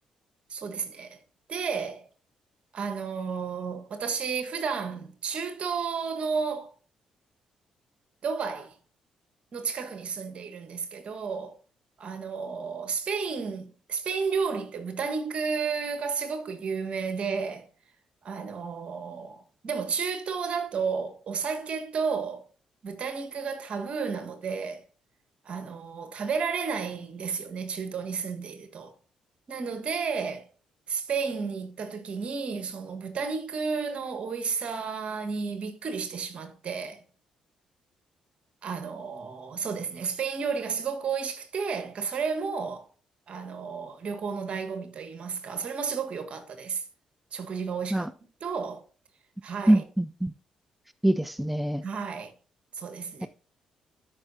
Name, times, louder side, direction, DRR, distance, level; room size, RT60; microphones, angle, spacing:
voice 1, 0.5-1.2 1.5-2.0 2.7-6.7 8.2-8.7 9.5-11.6 12.0-17.7 18.2-22.4 22.8-24.8 25.4-28.9 29.5-30.4 30.9-37.0 38.6-42.9 43.3-46.8 47.3-48.1 48.4-48.8 49.4-49.8 51.8-52.3 52.7-53.3, right 5 dB, 50° right, 1.6 m, -32 dB
voice 2, 49.7-50.3 51.0-51.8 53.2-53.3, right 1 dB, 5° right, 0.4 m, -24 dB
13.0 x 5.8 x 2.8 m
hypercardioid pair, 45°, 2 cm